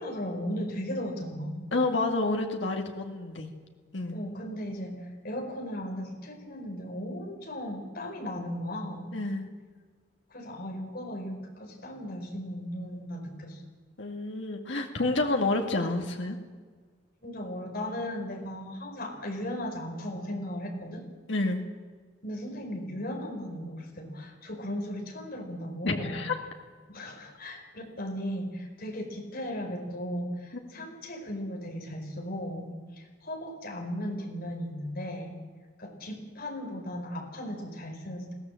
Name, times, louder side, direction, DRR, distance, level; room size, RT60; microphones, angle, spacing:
voice 1, 0.0-1.7 4.1-9.2 10.3-13.6 17.2-21.0 22.2-26.2 26.9-35.3 35.8-38.3, equal, 50° left, 2 dB, 4.9 m, -36 dB
voice 2, 1.7-3.5 3.9-4.2 9.1-9.5 14.0-16.4 21.3-21.6 25.8-26.4 30.8-30.9, left 2 dB, 75° left, 3 dB, 2.1 m, -29 dB
21.0 x 17.5 x 7.6 m, 1.5 s
head